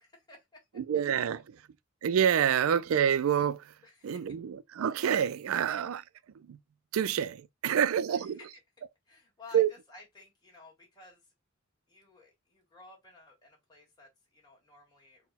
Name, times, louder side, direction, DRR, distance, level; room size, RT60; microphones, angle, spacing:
voice 1, 0.0-0.6 3.8-4.3 7.7-8.5 9.0-11.3 11.9-15.3, left 3 dB, 20° left, 1.5 m, -54 dB
voice 2, 0.8-1.4 2.0-3.6 4.0-6.0 6.5-6.6 6.9-8.3 9.5-9.7, right 8 dB, 85° right, 0.4 m, -27 dB
4.0 x 2.2 x 4.0 m
head